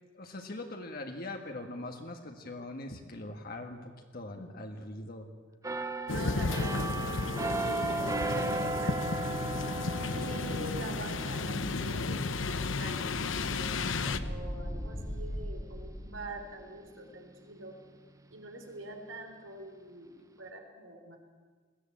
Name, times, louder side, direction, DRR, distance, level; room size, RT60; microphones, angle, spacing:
voice 1, 0.1-5.3, left 2 dB, 50° left, 4 dB, 1.6 m, -42 dB
sound 1, 5.6-17.2 17.6-17.9, right 2 dB, 15° right, 0.9 m, -37 dB
sound 2, 6.1-14.2, left 3 dB, 80° left, 0.9 m, -33 dB
voice 2, 6.1-6.9 7.4-9.2 10.0-13.7 14.0-17.8 18.3-21.2, right 1 dB, 85° right, 4 dB, 3.7 m, -45 dB
Explosion, 12.7-16.4, equal, 20° left, 1.9 m, -42 dB
21.0 x 14.5 x 8.7 m, 1.5 s
head